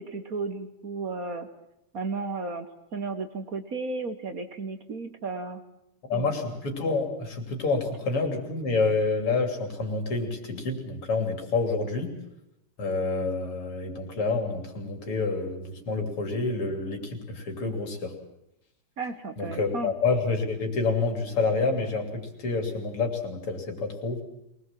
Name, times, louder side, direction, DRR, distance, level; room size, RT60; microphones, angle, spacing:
voice 1, 0.0-1.5 1.9-2.7 2.9-5.6 6.1-6.3 19.0-19.9, right 3 dB, 45° right, 8 dB, 1.4 m, -34 dB
voice 2, 6.1-12.1 12.8-18.1 19.4-24.2, left 3 dB, 85° left, 4 dB, 4.1 m, -28 dB
23.0 x 19.5 x 7.5 m, 0.86 s
omnidirectional pair, 2.4 m